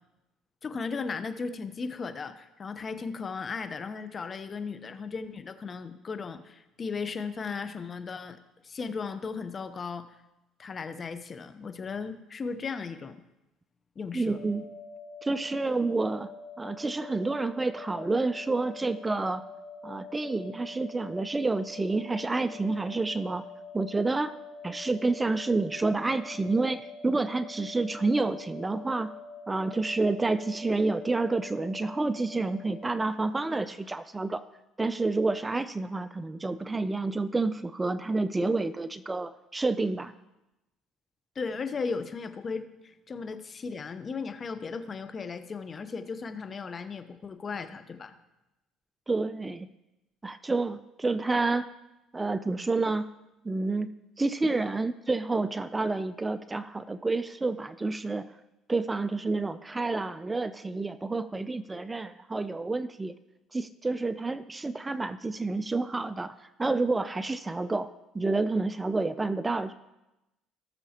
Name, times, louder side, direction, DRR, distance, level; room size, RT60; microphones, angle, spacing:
voice 1, 0.6-8.4 8.6-10.1 10.6-13.2 14.0-14.4 41.3-48.1, left 5 dB, 35° left, 10 dB, 0.8 m, -36 dB
voice 2, 14.1-14.7 15.2-16.3 16.6-19.4 19.8-23.4 23.7-24.3 24.6-29.1 29.5-34.4 34.8-40.1 49.1-49.7 50.2-51.7 52.1-53.1 53.4-53.9 54.2-58.3 58.7-63.1 63.5-67.9 68.1-69.7, right 3 dB, 15° right, 13 dB, 0.4 m, -29 dB
sound 1, 14.3-33.0, left 3 dB, 80° left, 3.5 m, -45 dB
18.0 x 6.9 x 2.9 m, 0.96 s
supercardioid pair, 90°, 0 cm